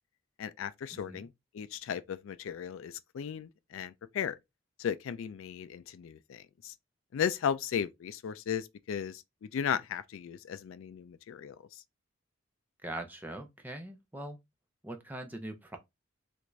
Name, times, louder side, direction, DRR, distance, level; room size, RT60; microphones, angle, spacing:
voice 1, 0.4-1.3 1.5-4.4 4.8-6.7 7.1-11.8, left 8 dB, 70° left, 0.3 m, -36 dB
voice 2, 0.9-1.3 12.8-14.4 14.8-15.8, right 1 dB, 10° right, 0.5 m, -42 dB
3.3 x 2.5 x 3.1 m
head